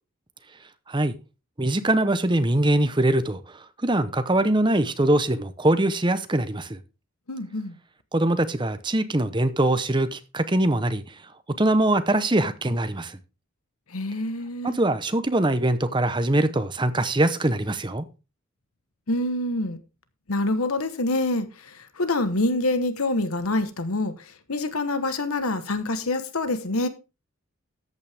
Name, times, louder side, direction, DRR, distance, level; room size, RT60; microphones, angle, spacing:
voice 1, 1.6-3.4 3.8-6.8 8.1-11.0 11.6-13.2 14.6-18.0, right 1 dB, 20° right, 0.9 m, -22 dB
voice 2, 7.3-7.7 13.9-14.8 19.1-19.8 20.3-26.9, left 2 dB, 85° left, 1.2 m, -26 dB
13.5 x 8.8 x 3.5 m
head